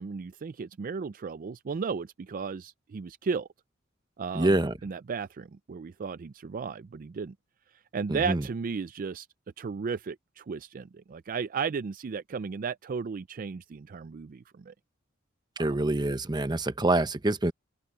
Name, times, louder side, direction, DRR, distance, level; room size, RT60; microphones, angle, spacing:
voice 1, 0.0-3.5 4.2-7.3 7.9-9.3 9.6-14.7 15.6-15.7, right 5 dB, 45° right, 0.4 m, -34 dB
voice 2, 4.3-4.7 8.1-8.4 15.6-17.5, right 2 dB, 20° right, 0.9 m, -26 dB
open air
head